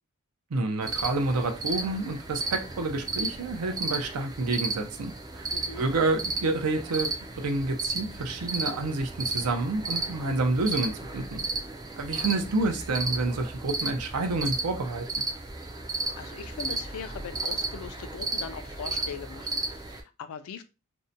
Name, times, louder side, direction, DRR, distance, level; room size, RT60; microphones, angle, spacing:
voice 1, 0.5-5.5 5.8-7.1 7.4-11.4 12.0-15.0, right 2 dB, 80° right, 0.5 m, -28 dB
sound 1, 0.8-20.0, right 3 dB, 15° right, 0.3 m, -34 dB
voice 2, 5.5-5.9 16.2-20.6, left 7 dB, 70° left, 0.3 m, -40 dB
2.6 x 2.1 x 2.6 m
head